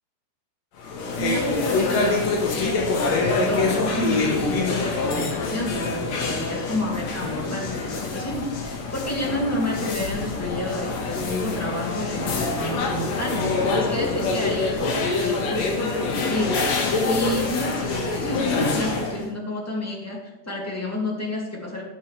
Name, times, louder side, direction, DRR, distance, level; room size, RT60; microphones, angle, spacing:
sound 1, 0.8-19.2, left 3 dB, 60° left, 2.5 m, -25 dB
voice 1, 1.2-16.6 17.0-21.8, left 1 dB, 5° left, -3 dB, 2.0 m, -30 dB
16.5 x 6.7 x 3.4 m, 0.99 s
omnidirectional pair, 3.6 m